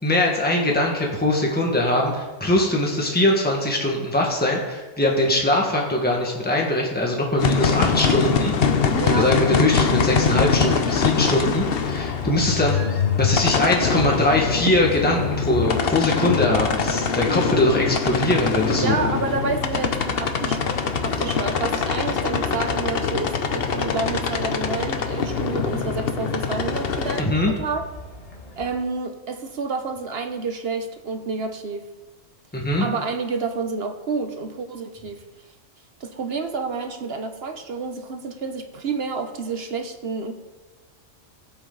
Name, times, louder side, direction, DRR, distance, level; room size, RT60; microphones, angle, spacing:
voice 1, 0.0-8.5 9.2-12.8 13.2-18.9 27.2-27.5 32.5-32.8, left 1 dB, 5° left, -1 dB, 1.7 m, -21 dB
sound 1, 7.4-27.2, left 6 dB, 55° left, 1.0 m, -23 dB
voice 2, 8.9-9.3 18.7-27.9 28.6-31.8 32.8-35.2 36.0-40.3, right 4 dB, 55° right, 7 dB, 1.1 m, -29 dB
sound 2, 9.8-28.8, left 1 dB, 30° left, 1.6 m, -40 dB
17.5 x 7.8 x 4.0 m, 1.2 s
omnidirectional pair, 1.3 m